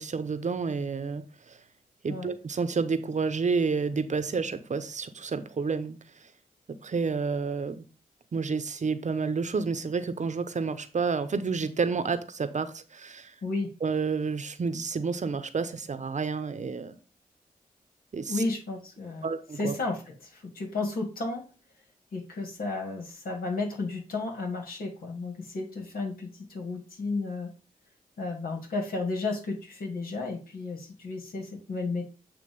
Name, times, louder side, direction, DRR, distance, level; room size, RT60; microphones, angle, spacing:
voice 1, 0.0-1.6 2.0-6.0 6.8-7.8 8.3-13.3 13.8-17.0 18.1-18.4 19.2-19.8, right 5 dB, 55° right, 0.8 m, -30 dB
voice 2, 13.4-13.7 18.3-19.3 19.5-21.4 22.1-27.5 28.2-32.1, left 3 dB, 90° left, 2.1 m, -33 dB
8.6 x 2.9 x 5.3 m
cardioid pair, 60°, 15 cm